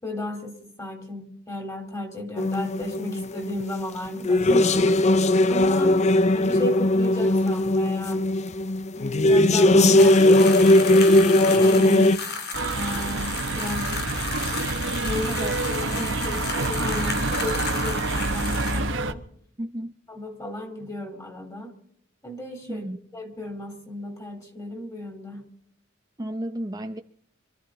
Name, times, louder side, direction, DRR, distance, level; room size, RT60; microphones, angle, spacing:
voice 1, 0.0-4.7 5.5-6.0 6.3-8.3 9.2-10.2 11.2-12.4 12.7-14.2 15.1-15.3 15.7-19.2 20.1-21.7 22.2-22.9 23.1-25.4, left 2 dB, 15° left, 3.8 m, -34 dB
sound 1, 2.4-3.9 4.1-12.2, left 1 dB, 35° left, 0.6 m, -19 dB
voice 2, 4.5-4.9 15.2-15.6 15.9-16.2 19.6-19.9 22.7-23.0 26.2-27.0, right 1 dB, 20° right, 0.7 m, -33 dB
sound 2, 10.0-18.9, left 5 dB, 55° left, 2.2 m, -33 dB
sound 3, 12.5-19.1, right 3 dB, 65° right, 1.2 m, -27 dB
26.0 x 13.5 x 4.0 m
head